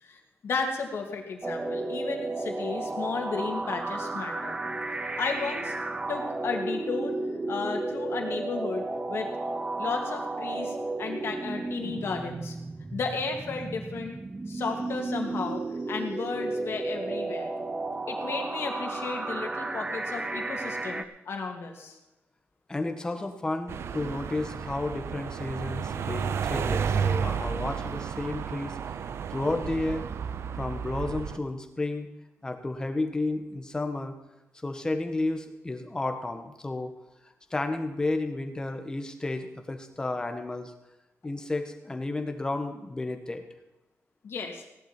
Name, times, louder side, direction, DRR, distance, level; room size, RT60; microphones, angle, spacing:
voice 1, 0.0-4.6 5.2-5.8 6.1-7.2 7.5-9.3 9.8-12.6 12.9-14.2 14.5-17.5 18.1-22.0 44.2-44.6, left 4 dB, 60° left, 2 dB, 2.4 m, -34 dB
sound 1, 1.4-21.0, right 2 dB, 20° right, 0.6 m, -33 dB
voice 2, 22.7-28.8 29.3-30.1 30.6-32.1 32.4-34.1 34.6-36.9 37.5-40.7 41.2-43.4, left 2 dB, 15° left, 6 dB, 1.3 m, -32 dB
sound 2, 23.7-31.4, right 7 dB, 65° right, 0.6 m, -32 dB
17.0 x 11.5 x 4.4 m, 0.99 s
wide cardioid pair, 180°, 5 cm